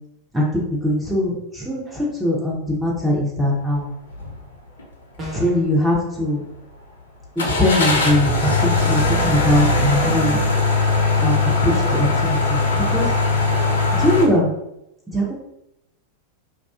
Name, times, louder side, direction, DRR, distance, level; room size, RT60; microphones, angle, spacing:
voice 1, 0.3-3.9 5.3-6.4 7.4-10.4 11.2-13.1 13.9-14.5 15.1-15.3, left 1 dB, 5° right, -4 dB, 0.6 m, -21 dB
sound 1, 4.1-4.3 4.8-4.9 7.4-14.2, left 3 dB, 65° left, 0.5 m, -20 dB
sound 2, 5.2-5.7, equal, 25° right, 1.0 m, -33 dB
2.3 x 2.3 x 2.3 m, 0.83 s
figure-of-eight pair, 90°, 0 cm